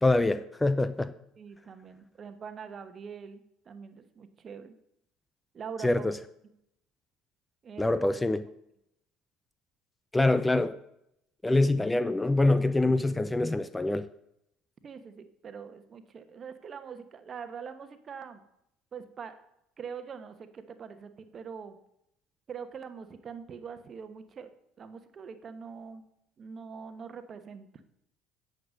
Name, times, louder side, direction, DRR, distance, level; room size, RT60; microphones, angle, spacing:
voice 1, 0.0-1.1 5.8-6.2 7.8-8.4 10.1-10.8 11.4-14.1, left 2 dB, 15° left, 0.5 m, -25 dB
voice 2, 1.4-4.7 5.5-6.1 7.6-8.1 14.8-18.4 18.9-19.3 19.8-21.8 22.5-24.5 24.8-26.0 26.4-27.8, right 6 dB, 40° right, 1.1 m, -43 dB
9.6 x 6.7 x 6.3 m
hypercardioid pair, 65°, 0 cm